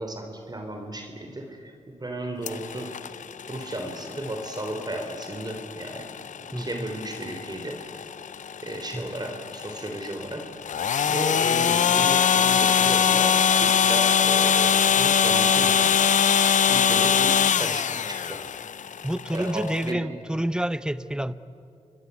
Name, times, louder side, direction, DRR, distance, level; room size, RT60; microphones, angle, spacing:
voice 1, 0.0-1.7 2.0-3.2 3.5-6.1 6.6-7.8 8.6-10.5 11.1-16.0 16.6-18.5 19.3-20.0, right 1 dB, 30° right, 4 dB, 3.6 m, -34 dB
sound 1, 2.5-19.9, left 7 dB, 75° left, 0.6 m, -23 dB
voice 2, 6.5-6.9 8.9-9.1 19.0-21.3, right 1 dB, 5° right, 15 dB, 0.9 m, -28 dB
28.5 x 22.0 x 8.3 m, 2.6 s
cardioid pair, 55°, 13 cm